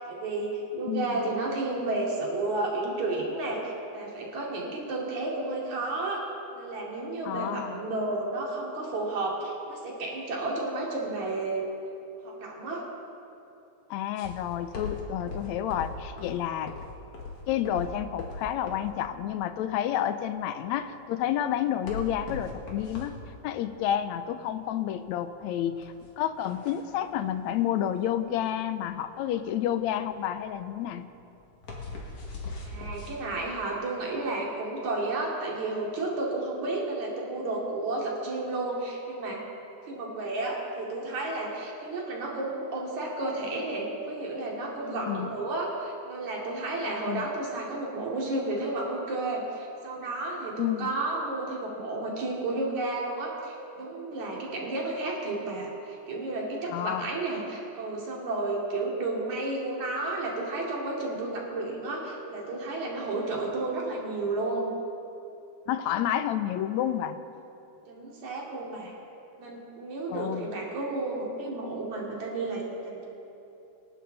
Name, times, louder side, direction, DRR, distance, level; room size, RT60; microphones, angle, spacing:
voice 1, 0.0-6.2 6.5-11.6 12.2-12.9 32.7-39.4 39.8-64.7 67.9-68.9 69.4-73.0, right 2 dB, 75° right, -3 dB, 4.0 m, -32 dB
voice 2, 0.9-1.2 7.3-7.8 13.9-16.7 17.5-23.1 23.4-31.1 44.9-45.3 46.9-47.3 50.6-50.9 56.7-57.1 65.7-67.2 70.1-70.5, left 11 dB, 75° left, 10 dB, 1.9 m, -30 dB
sound 1, 14.2-33.1, left 3 dB, 55° left, 3.0 m, -41 dB
26.5 x 11.5 x 4.1 m, 2.8 s
omnidirectional pair, 3.3 m